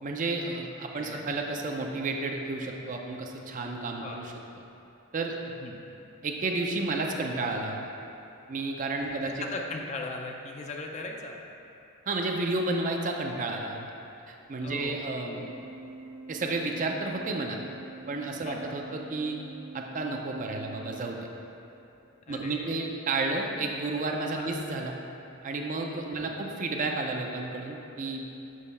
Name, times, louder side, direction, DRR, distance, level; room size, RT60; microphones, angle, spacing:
voice 1, 0.0-4.3 5.1-5.4 6.2-7.8 8.5-9.4 12.1-13.8 14.3-15.5 16.3-17.6 18.1-19.4 19.7-21.3 22.3-24.9 25.4-28.2, right 3 dB, 40° right, 2 dB, 0.4 m, -31 dB
voice 2, 0.9-1.3 4.0-4.2 5.4-5.8 9.4-11.4 14.6-15.0 18.4-18.7 22.3-22.7 24.3-24.5 26.1-26.4, left 3 dB, 35° left, 1 dB, 0.4 m, -38 dB
Organ, 15.3-21.9, right 3 dB, 70° right, 0.7 m, -46 dB
6.4 x 3.0 x 5.4 m, 2.9 s
head